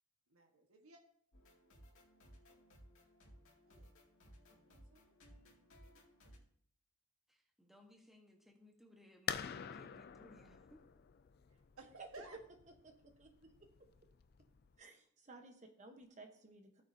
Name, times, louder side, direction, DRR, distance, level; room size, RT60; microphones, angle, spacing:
voice 1, 0.3-1.0 3.7-3.9 4.7-5.1 11.5-12.4, right 2 dB, 70° right, 2 dB, 1.5 m, -58 dB
sound 1, 1.3-6.4, equal, 60° left, 2.5 m, -62 dB
voice 2, 7.3-10.9, left 1 dB, ahead, 1 dB, 1.3 m, -63 dB
sound 2, 9.3-14.8, left 8 dB, 45° left, 0.4 m, -47 dB
voice 3, 12.8-13.3 14.8-16.8, right 3 dB, 35° right, 4 dB, 1.1 m, -56 dB
15.5 x 9.3 x 2.8 m, 0.65 s
head